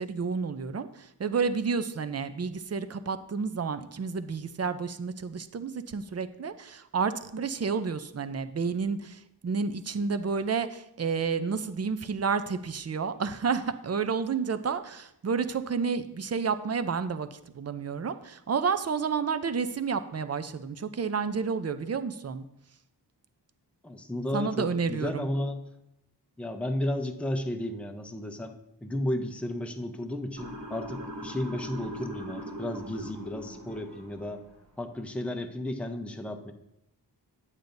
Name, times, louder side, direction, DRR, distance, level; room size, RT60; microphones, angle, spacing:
voice 1, 0.0-22.4 24.3-25.3, right 5 dB, 35° right, 11 dB, 0.5 m, -30 dB
voice 2, 23.8-25.6 26.4-34.4 34.8-36.5, left 1 dB, 5° left, 6 dB, 0.6 m, -33 dB
Motor vehicle (road) / Siren, 30.4-34.5, equal, 80° right, 3.1 m, -40 dB
8.6 x 8.1 x 2.6 m, 0.81 s
wide cardioid pair, 60°, 42 cm